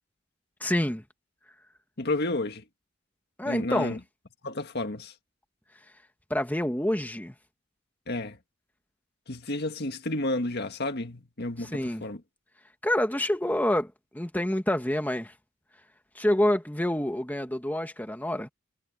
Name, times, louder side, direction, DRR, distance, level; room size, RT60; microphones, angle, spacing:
voice 1, 0.6-1.0 3.4-4.0 6.3-7.3 11.6-12.0 12.8-15.3 16.1-18.5, left 1 dB, 10° left, 1.6 m, -27 dB
voice 2, 2.0-2.6 3.5-4.0 4.4-5.1 8.1-8.4 9.3-12.2, left 2 dB, 55° left, 1.8 m, -31 dB
head